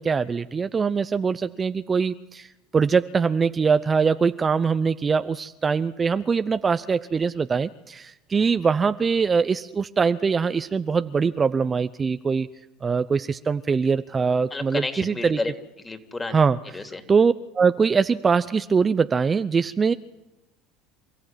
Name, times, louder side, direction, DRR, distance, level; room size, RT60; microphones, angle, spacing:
voice 1, 0.0-2.5 2.7-12.5 12.8-15.4 16.3-16.6 17.1-19.9, right 5 dB, 30° right, 11 dB, 0.8 m, -22 dB
voice 2, 14.5-16.4 16.7-17.0, left 3 dB, 20° left, 7 dB, 3.2 m, -31 dB
27.5 x 15.0 x 9.2 m, 0.94 s
hypercardioid pair, 80°, 0 cm